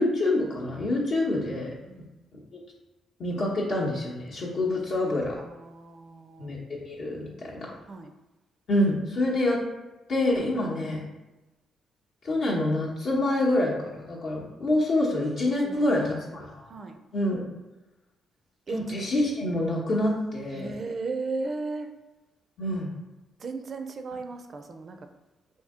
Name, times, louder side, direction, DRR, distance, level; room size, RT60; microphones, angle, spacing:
voice 1, 0.0-1.7 3.2-5.4 6.4-7.7 8.7-9.6 10.1-11.0 12.2-16.6 17.1-17.4 18.7-20.7 22.6-22.9, left 1 dB, 60° left, -5 dB, 0.8 m, -26 dB
voice 2, 5.4-6.5 7.9-8.1 10.5-11.0 15.6-16.3 16.7-17.0 18.7-18.8 20.5-21.9 23.4-25.0, right 3 dB, 40° right, 6 dB, 0.4 m, -36 dB
2.8 x 2.7 x 3.6 m, 1.0 s
cardioid pair, 90°, 0 cm